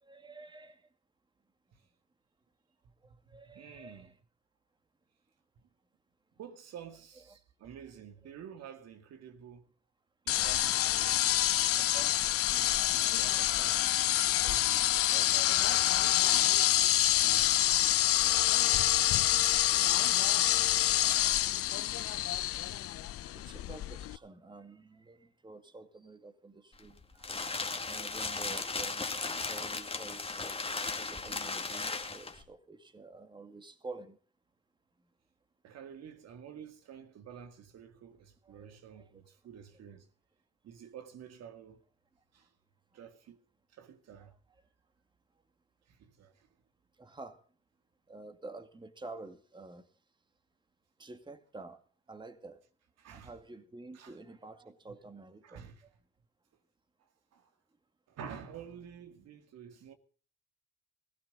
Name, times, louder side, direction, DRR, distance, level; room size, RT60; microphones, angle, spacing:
voice 1, 0.0-0.9 3.0-4.1 7.3-7.4 16.6-16.7 20.9-21.6 21.9-22.2 23.1-29.1 29.5-34.2 38.4-39.2 44.2-44.3 47.0-47.4 48.1-49.9 51.0-51.8 52.1-52.6 53.1-55.9, right 3 dB, 15° right, 2.2 m, -50 dB
voice 2, 3.1-4.1 5.6-5.7 6.4-9.7 10.2-11.2 11.7-13.9 14.3-16.6 17.0-18.0 35.6-40.1 40.6-41.8 42.3-42.5 42.9-43.4 43.7-44.4 45.9-46.5 53.0-53.3 53.9-54.2 55.4-55.9 57.0-57.6 58.1-59.9, right 8 dB, 60° right, 2.3 m, -50 dB
sound 1, 10.3-24.2, left 13 dB, 50° left, 0.7 m, -27 dB
sound 2, 26.7-32.4, left 4 dB, 20° left, 2.2 m, -36 dB
18.5 x 16.0 x 3.9 m
supercardioid pair, 80°, 30 cm